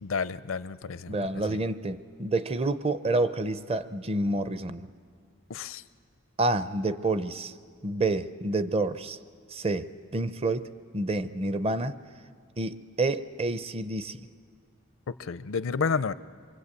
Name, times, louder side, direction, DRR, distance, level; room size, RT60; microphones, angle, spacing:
voice 1, 0.0-1.2 1.5-1.6 5.5-5.8 15.2-16.1, left 5 dB, 70° left, 15 dB, 0.5 m, -30 dB
voice 2, 1.1-4.9 6.4-7.5 7.8-9.2 9.5-12.0 12.6-14.3, right 2 dB, 30° right, 13 dB, 0.6 m, -29 dB
24.5 x 23.5 x 8.3 m, 2.1 s
head